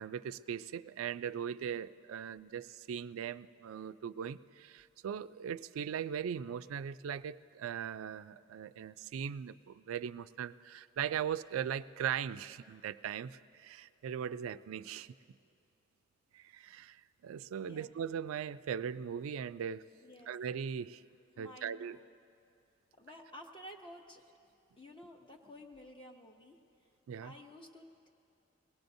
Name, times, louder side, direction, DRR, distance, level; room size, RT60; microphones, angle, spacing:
voice 1, 0.0-15.1 16.3-19.8 20.3-21.0 21.4-22.0 27.1-27.3, right 8 dB, 90° right, 15 dB, 0.3 m, -39 dB
voice 2, 17.6-17.9 20.0-20.3 21.3-22.1 23.0-24.2 24.8-26.6 27.2-28.1, left 1 dB, 25° left, 1 dB, 0.6 m, -52 dB
22.0 x 18.0 x 2.6 m, 2.6 s
head